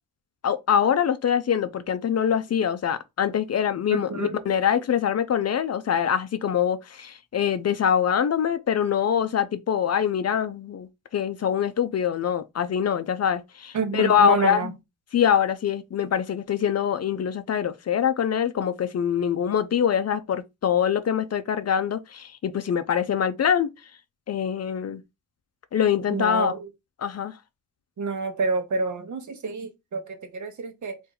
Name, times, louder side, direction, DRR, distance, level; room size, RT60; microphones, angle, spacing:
voice 1, 0.4-14.7 15.1-23.7 24.3-25.0 25.7-26.5 27.0-27.3, left 8 dB, 45° left, 0.5 m, -24 dB
voice 2, 3.9-4.6 13.7-14.7 26.1-26.7 28.0-31.0, right 4 dB, 55° right, 0.9 m, -28 dB
2.8 x 2.6 x 3.8 m
cardioid pair, 55°, 36 cm